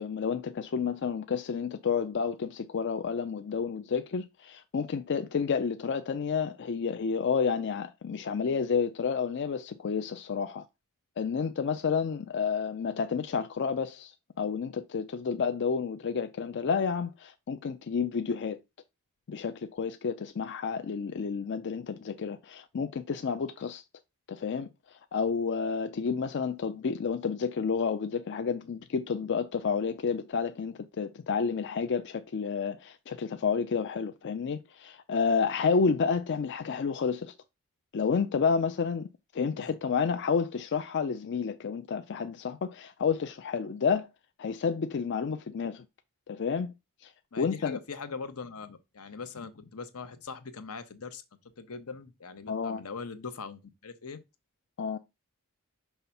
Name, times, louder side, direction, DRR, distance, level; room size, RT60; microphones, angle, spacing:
voice 1, 0.0-10.6 11.2-14.1 14.4-18.6 19.3-23.8 24.3-24.7 25.1-37.3 37.9-44.1 44.4-45.8 46.3-46.7 47.0-47.1 47.4-47.8 52.5-52.8 54.8-55.0, left 5 dB, 55° left, 0.4 m, -30 dB
voice 2, 47.3-51.2 51.6-54.2, left 5 dB, 80° left, 0.9 m, -41 dB
5.6 x 3.4 x 5.7 m
head